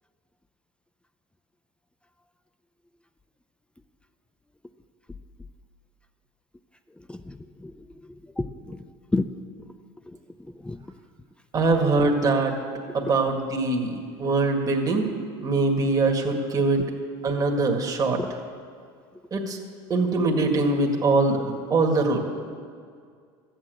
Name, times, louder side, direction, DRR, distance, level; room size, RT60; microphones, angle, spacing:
voice 1, 7.1-8.8 9.1-9.3 10.1-10.9 12.9-13.1 18.2-18.3, left 2 dB, 10° left, 9 dB, 0.5 m, -32 dB
voice 2, 11.5-12.6 12.9-15.1 15.4-16.8 17.2-18.2 19.3-19.6 19.9-22.2, right 3 dB, 30° right, 2 dB, 1.9 m, -23 dB
13.5 x 8.9 x 7.8 m, 2.1 s
supercardioid pair, 105°, 13 cm